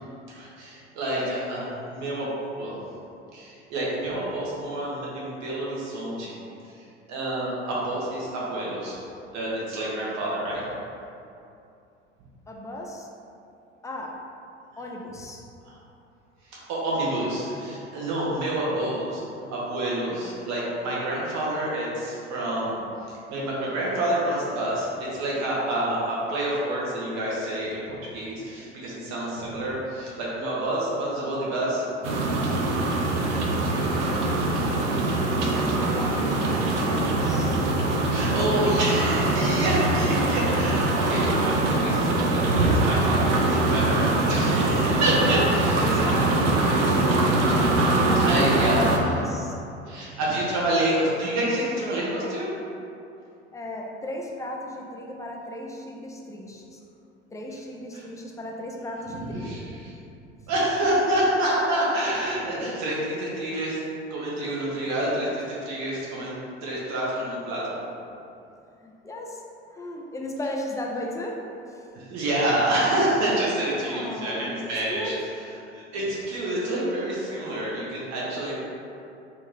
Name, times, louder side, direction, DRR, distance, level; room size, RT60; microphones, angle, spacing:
voice 1, 0.3-2.3 2.6-2.7 3.3-6.3 7.1-9.0 9.3-10.6 15.7-15.8 16.5-19.2 19.5-31.8 38.1-46.2 48.2-49.1 49.9-52.5 57.9-58.0 59.1-59.9 60.5-63.8 64.1-67.8 71.9-78.5, right 1 dB, 50° right, -6 dB, 1.3 m, -28 dB
voice 2, 12.5-13.1 13.8-14.2 14.8-15.4 34.5-34.8 35.2-37.6 38.2-38.7 45.6-46.5 47.9-49.6 53.5-56.8 57.3-59.7 68.8-69.4 69.7-71.9 73.8-75.2, left 1 dB, 10° left, -1 dB, 0.3 m, -36 dB
sound 1, 32.0-49.0, right 2 dB, 80° right, 0.5 m, -23 dB
4.0 x 2.5 x 3.3 m, 2.6 s
hypercardioid pair, 75°, 35 cm